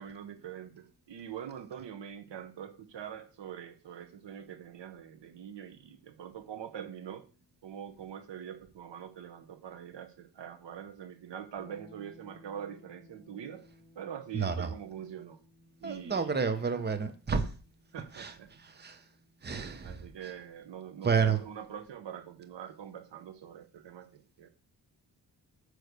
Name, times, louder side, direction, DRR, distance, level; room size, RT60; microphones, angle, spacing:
voice 1, 0.0-7.3 7.6-13.6 13.9-15.4 15.8-16.8 17.9-18.5 19.8-24.5, right 9 dB, 80° right, 1.1 m, -44 dB
sound 1, 11.6-21.3, left 1 dB, 25° left, 3.6 m, -61 dB
voice 2, 14.3-14.7 15.8-17.5 18.1-18.3 18.7-19.0 19.4-20.0 21.0-21.4, right 5 dB, 25° right, 0.9 m, -30 dB
9.0 x 3.2 x 6.7 m
wide cardioid pair, 105°, 42 cm